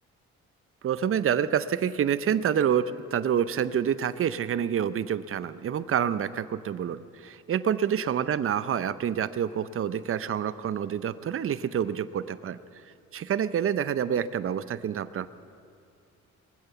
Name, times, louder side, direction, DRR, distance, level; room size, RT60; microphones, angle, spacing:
voice 1, 0.8-12.6 13.1-15.3, right 8 dB, 45° right, 14 dB, 0.6 m, -27 dB
22.5 x 8.2 x 6.9 m, 2.4 s
cardioid pair, 90°, 30 cm